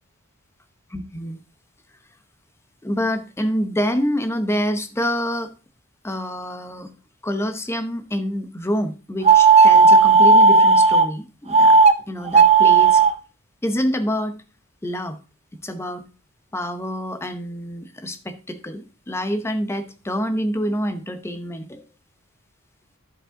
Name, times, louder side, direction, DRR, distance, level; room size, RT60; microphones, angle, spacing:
voice 1, 0.9-1.4 2.8-5.5 6.0-6.9 7.2-11.8 12.1-13.0 13.6-14.4 14.8-15.2 15.5-16.0 16.5-21.8, equal, 10° left, 9 dB, 0.7 m, -27 dB
sound 1, 9.2-11.1 11.5-11.9 12.3-13.1, right 4 dB, 30° right, 0.5 m, -12 dB
10.5 x 5.1 x 3.7 m, 0.34 s
head